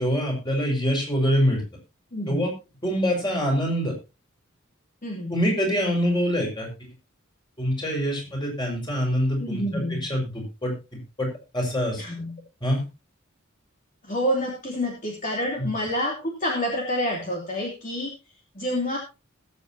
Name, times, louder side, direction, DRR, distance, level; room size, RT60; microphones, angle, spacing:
voice 1, 0.0-1.6 2.3-2.5 2.8-3.9 5.3-6.7 7.6-10.7 11.2-11.3 11.5-12.0 12.6-12.8 15.6-15.7, equal, 20° left, 0 dB, 5.5 m, -25 dB
voice 2, 2.1-2.5 5.0-5.3 9.4-10.1 12.0-12.3 14.0-18.1 18.5-19.0, equal, 40° left, -1 dB, 2.8 m, -28 dB
20.5 x 8.2 x 2.9 m, 0.28 s
head